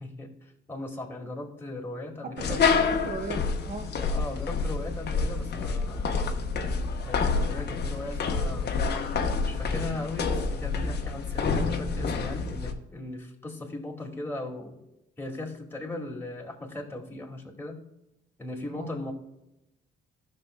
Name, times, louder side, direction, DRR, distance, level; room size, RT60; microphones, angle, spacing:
voice 1, 0.0-2.7 3.9-6.1 7.0-8.7 9.4-14.8 15.2-17.8 18.4-19.1, left 2 dB, 10° left, -2 dB, 2.1 m, -38 dB
voice 2, 2.2-3.9 18.7-18.9, right 5 dB, 45° right, 5 dB, 1.0 m, -38 dB
sound 1, 2.4-12.7, left 4 dB, 55° left, 1.0 m, -28 dB
14.5 x 6.4 x 2.2 m, 0.89 s
cardioid pair, 90°, 20 cm